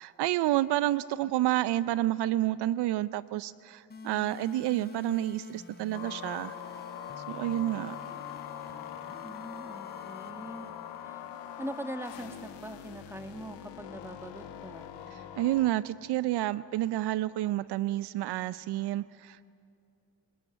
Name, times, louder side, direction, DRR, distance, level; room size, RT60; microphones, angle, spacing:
voice 1, 0.0-6.5 7.3-8.0 15.1-19.5, right 15 dB, 70° right, 17 dB, 0.6 m, -29 dB
sound 1, 3.9-11.9, left 3 dB, 25° left, 4.8 m, -49 dB
sound 2, 5.9-15.7, left 10 dB, 85° left, 1.5 m, -43 dB
voice 2, 9.2-10.7 11.0-11.2 11.6-14.9, right 1 dB, 5° right, 6 dB, 2.1 m, -42 dB
27.0 x 19.5 x 10.0 m, 2.5 s
supercardioid pair, 70°, 41 cm